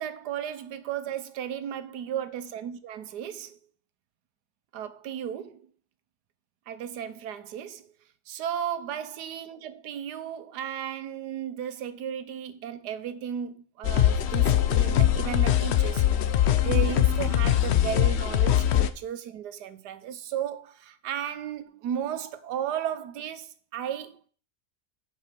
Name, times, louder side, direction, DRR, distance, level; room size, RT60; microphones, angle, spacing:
voice 1, 0.0-3.6 4.7-5.7 6.7-7.9 8.3-24.2, right 9 dB, 85° right, 1.4 m, -35 dB
sound 1, 13.8-18.9, left 11 dB, 65° left, 0.6 m, -22 dB
8.2 x 4.8 x 5.9 m
omnidirectional pair, 1.7 m